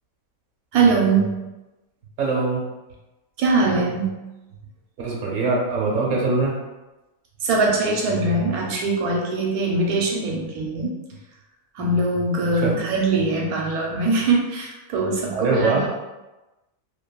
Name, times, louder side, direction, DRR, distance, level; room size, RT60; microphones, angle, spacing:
voice 1, 0.7-1.3 3.4-4.1 7.4-10.9 11.7-15.9, right 3 dB, 80° right, -1 dB, 1.1 m, -22 dB
voice 2, 2.2-2.6 5.0-6.5 12.6-12.7 15.3-15.9, right 3 dB, 65° right, -2 dB, 1.0 m, -22 dB
2.7 x 2.7 x 2.2 m, 1.1 s
omnidirectional pair, 1.5 m